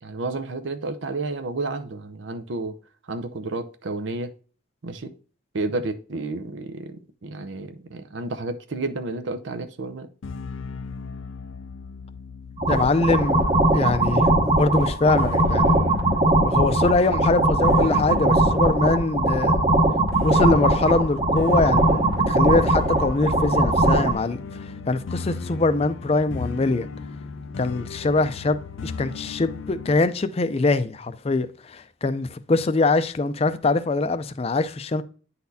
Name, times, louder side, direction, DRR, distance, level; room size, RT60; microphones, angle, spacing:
voice 1, 0.0-2.7 3.1-4.3 4.8-5.1 5.5-10.1, right 3 dB, 75° right, 0.6 m, -31 dB
sound 1, 10.2-30.0, left 4 dB, 90° left, 0.5 m, -36 dB
sound 2, 12.6-24.1, right 1 dB, 30° right, 0.9 m, -20 dB
voice 2, 12.7-13.5 13.7-15.8 16.4-19.6 20.2-26.9 27.6-35.0, left 3 dB, 30° left, 0.4 m, -23 dB
9.4 x 4.1 x 2.7 m
head